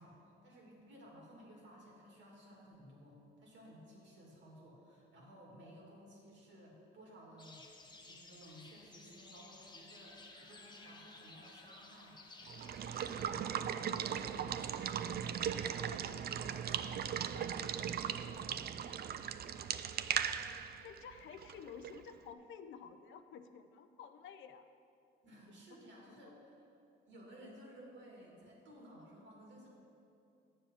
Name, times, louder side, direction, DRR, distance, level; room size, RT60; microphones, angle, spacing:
voice 1, 0.0-7.6 8.1-18.6 25.2-26.7 27.1-29.7, equal, 70° right, -2 dB, 2.6 m, -57 dB
sound 1, 7.4-13.3, left 3 dB, 20° left, 1.0 m, -56 dB
Water / Water tap faucet / Liquid, 12.5-22.1, right 8 dB, 50° right, 0.4 m, -38 dB
voice 2, 20.8-24.7 26.0-26.4, left 7 dB, 75° left, 10 dB, 0.6 m, -52 dB
9.1 x 7.1 x 5.7 m, 2.7 s
cardioid pair, 90°, 20 cm